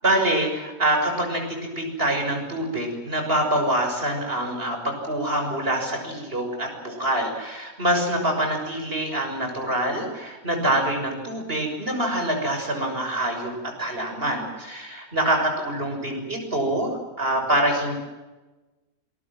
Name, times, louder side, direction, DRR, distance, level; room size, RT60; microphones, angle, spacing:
voice 1, 0.0-13.5 13.8-17.9, right 1 dB, 40° right, 3 dB, 6.9 m, -25 dB
26.5 x 21.5 x 7.7 m, 1.1 s
omnidirectional pair, 1.5 m